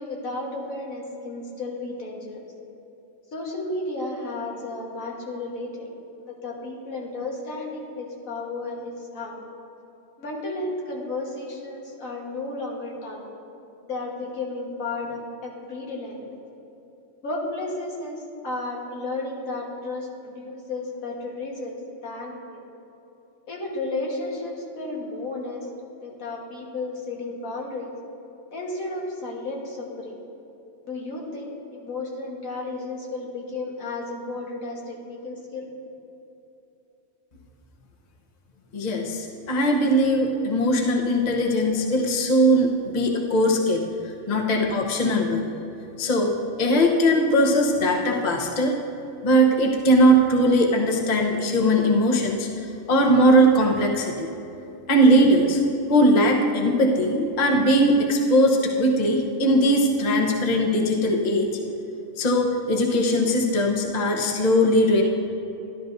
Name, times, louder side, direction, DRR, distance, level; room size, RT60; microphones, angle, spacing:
voice 1, 0.0-2.4 3.3-5.9 6.2-9.4 10.2-13.3 13.8-16.4 17.2-22.6 23.5-25.7 26.0-27.9 28.5-30.2 30.8-35.7, left 2 dB, 90° left, -2 dB, 1.9 m, -33 dB
voice 2, 38.7-43.9 44.3-45.4 46.0-46.3 46.6-48.7 49.2-52.5 52.9-54.3 54.9-55.6 55.9-61.5 62.2-65.0, equal, 35° left, 0 dB, 0.9 m, -20 dB
13.5 x 12.0 x 2.6 m, 2.9 s
omnidirectional pair, 1.4 m